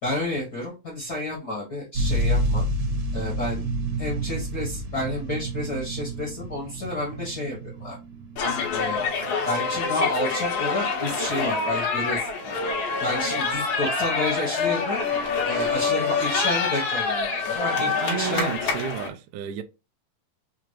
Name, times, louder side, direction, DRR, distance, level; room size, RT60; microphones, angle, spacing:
voice 1, 0.0-2.7 3.1-3.6 4.0-8.0 8.7-9.0 9.4-12.6 13.0-15.0 15.4-18.5, left 1 dB, 85° left, 0.9 m, -30 dB
sound 1, 1.9-9.5 10.2-10.3, right 1 dB, 60° right, 2.3 m, -29 dB
sound 2, 8.4-19.1, left 4 dB, 65° left, 2.2 m, -26 dB
voice 2, 17.8-19.6, right 10 dB, 80° right, 1.8 m, -32 dB
5.9 x 2.4 x 3.0 m
omnidirectional pair, 4.2 m